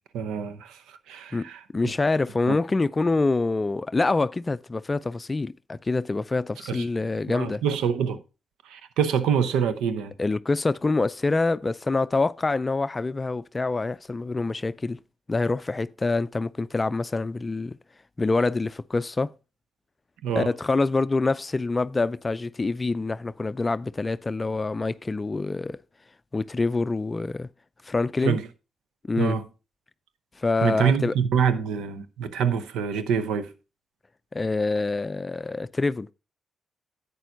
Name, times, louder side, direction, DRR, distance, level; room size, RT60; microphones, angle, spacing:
voice 1, 0.1-0.8 1.1-1.6 2.5-2.6 6.7-6.8 7.3-8.2 8.7-10.1 20.2-20.5 28.2-28.5 29.2-29.4 30.6-33.5, right 7 dB, 75° right, 0.8 m, -25 dB
voice 2, 1.3-7.6 10.2-15.0 15.3-17.8 18.2-19.3 20.4-25.8 26.3-27.5 27.8-28.4 29.1-29.4 30.4-31.1 34.3-36.1, left 3 dB, 30° left, 0.4 m, -26 dB
11.0 x 8.4 x 2.6 m
hypercardioid pair, 45°, 0 cm